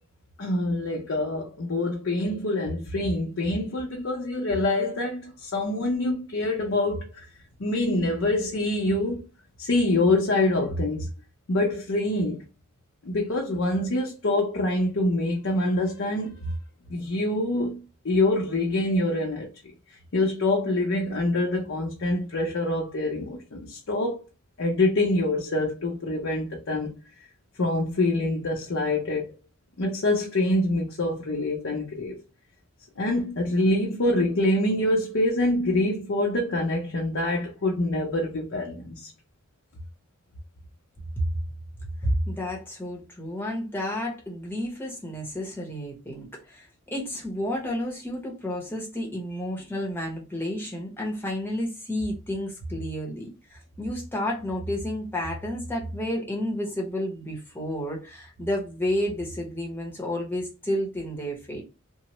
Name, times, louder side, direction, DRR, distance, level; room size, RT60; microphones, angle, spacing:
voice 1, 0.4-7.2 7.6-9.3 9.6-11.1 11.5-12.4 13.0-16.5 16.9-19.5 20.1-24.2 24.6-26.9 27.6-29.3 29.8-32.2 33.0-39.1, left 2 dB, 65° left, 0.6 m, -25 dB
voice 2, 42.0-61.6, equal, 10° left, 0.8 m, -31 dB
3.0 x 2.0 x 2.9 m
head